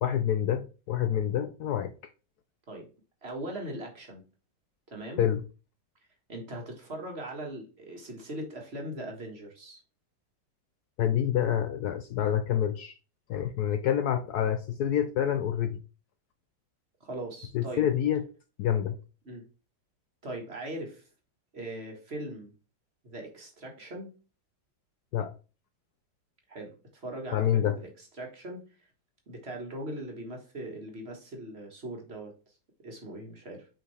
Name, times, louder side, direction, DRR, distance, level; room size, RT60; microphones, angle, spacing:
voice 1, 0.0-1.9 5.2-5.4 11.0-13.0 13.3-15.8 17.5-18.2 18.6-19.0 25.1-25.3 27.3-27.8, left 10 dB, 70° left, 1.0 m, -27 dB
voice 2, 3.2-4.2 4.9-5.2 6.3-9.8 17.0-17.8 19.2-19.4 20.2-21.1 21.5-22.5 23.0-24.1 26.5-28.6 29.3-32.3 32.8-33.7, right 1 dB, 35° right, 1.6 m, -40 dB
5.8 x 5.0 x 3.2 m
omnidirectional pair, 2.0 m